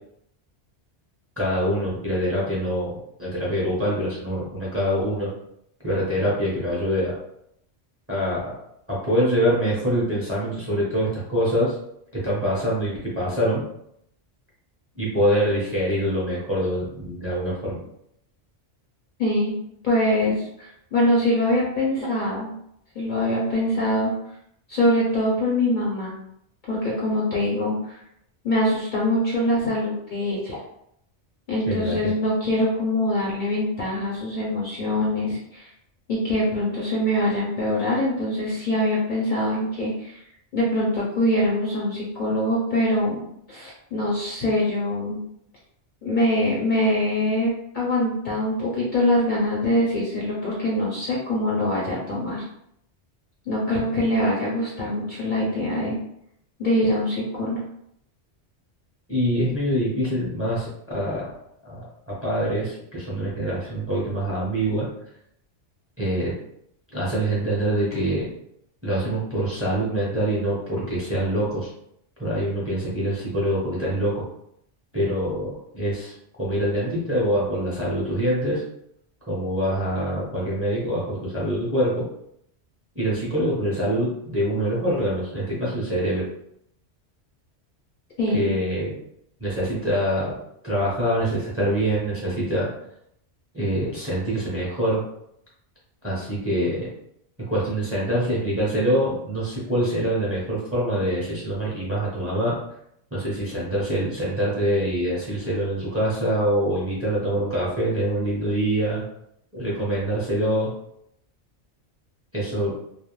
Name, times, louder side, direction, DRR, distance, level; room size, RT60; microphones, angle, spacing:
voice 1, 1.4-5.3 5.8-7.2 8.1-8.6 8.9-11.7 12.1-13.6 15.0-17.8 31.7-32.1 59.1-61.3 61.6-64.9 66.0-66.4 66.9-68.3 68.8-71.7 72.2-74.3 74.9-76.1 76.4-78.6 79.3-82.1 82.9-86.2 88.3-88.9 89.4-90.4 90.6-92.7 93.5-95.0 96.0-96.9 97.5-102.6 103.1-109.0 109.5-110.7 112.3-112.7, equal, 15° right, -7 dB, 0.7 m, -25 dB
voice 2, 19.2-19.5 19.8-22.5 23.0-24.1 24.7-26.1 26.7-28.0 28.4-30.6 31.5-35.7 36.1-40.2 40.5-43.2 43.5-45.2 46.0-52.4 53.5-56.0 56.6-57.6 88.2-88.5, left 1 dB, 55° left, -5 dB, 0.6 m, -23 dB
2.3 x 2.1 x 3.0 m, 0.75 s
omnidirectional pair, 1.2 m